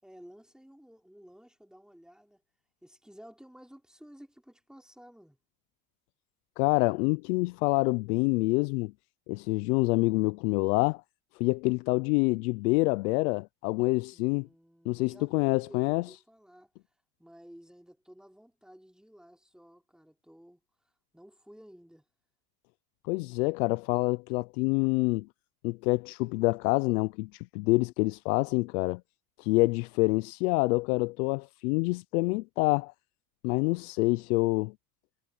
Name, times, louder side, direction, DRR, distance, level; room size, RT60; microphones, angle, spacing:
voice 1, 0.0-2.4 2.8-5.4 14.1-16.7 17.2-20.6 21.1-22.0, equal, ahead, 4.5 m, -54 dB
voice 2, 6.6-8.9 9.3-11.0 11.4-14.5 14.9-16.0 23.0-25.3 25.6-29.0 29.4-32.9 33.4-34.7, left 25 dB, 90° left, 0.6 m, -27 dB
supercardioid pair, 105°, 43 cm